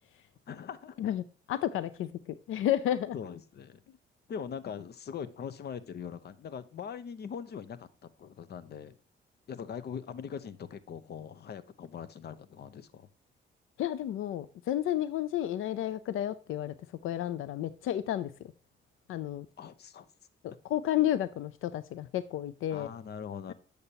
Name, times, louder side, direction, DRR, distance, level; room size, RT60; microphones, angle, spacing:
voice 1, 0.5-1.0 3.1-3.8 4.3-9.0 9.5-13.1 19.6-20.1 22.7-23.5, left 7 dB, 55° left, 0.7 m, -41 dB
voice 2, 1.0-3.2 13.8-16.7 17.0-18.3 19.1-19.5 20.4-22.9 23.5-23.6, left 12 dB, 85° left, 0.5 m, -31 dB
8.2 x 6.6 x 2.8 m
cardioid pair, 110°, 21 cm